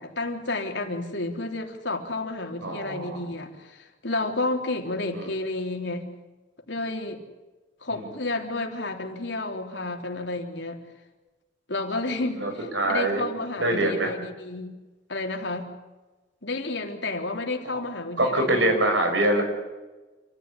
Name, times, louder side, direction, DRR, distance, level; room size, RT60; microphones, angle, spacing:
voice 1, 0.0-6.1 6.7-7.2 7.8-10.8 11.7-14.8 15.1-15.6 16.4-18.6, left 2 dB, 75° left, 3 dB, 3.7 m, -31 dB
voice 2, 2.6-3.2 5.1-5.3 7.9-8.1 12.4-13.2 13.6-14.1 17.7-17.8 18.2-19.4, right 1 dB, 85° right, 4 dB, 6.3 m, -24 dB
28.5 x 15.0 x 9.9 m, 1.2 s
head